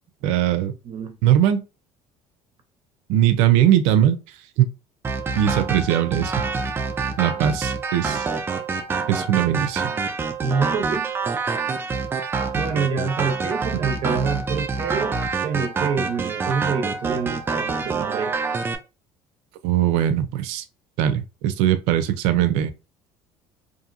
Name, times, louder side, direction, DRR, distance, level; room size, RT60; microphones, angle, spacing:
voice 1, 0.2-0.7 1.2-1.6 3.1-4.2 4.6-4.7 5.4-6.3 7.2-8.3 9.1-9.8 19.6-20.6 21.0-22.7, right 11 dB, 85° right, 0.5 m, -20 dB
voice 2, 0.8-1.2 10.4-11.1 12.5-18.4, right 5 dB, 50° right, 0.7 m, -26 dB
sound 1, 5.0-18.8, right 4 dB, 20° right, 0.4 m, -26 dB
2.8 x 2.6 x 2.5 m
cardioid pair, 120°, 10 cm